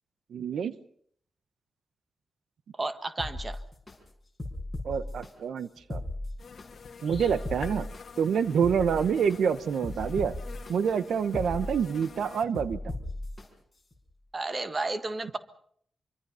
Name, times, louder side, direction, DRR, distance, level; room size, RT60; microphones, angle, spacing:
voice 1, 0.3-0.7 4.8-6.0 7.0-7.9 8.2-10.3 10.7-12.9, right 7 dB, 85° right, 13 dB, 0.9 m, -27 dB
voice 2, 2.8-3.6 14.3-15.4, right 2 dB, 25° right, 10 dB, 1.5 m, -32 dB
sound 1, 3.2-4.0 4.4-5.3 5.8-6.7 7.1-8.0 8.5-9.4 9.8-10.7 11.2-12.1 12.5-13.5 13.9-14.0, left 1 dB, 10° left, 5.1 m, -36 dB
sound 2, 6.4-12.4, left 5 dB, 50° left, 1.7 m, -47 dB
25.5 x 24.0 x 5.7 m, 0.63 s
wide cardioid pair, 170°, 0 cm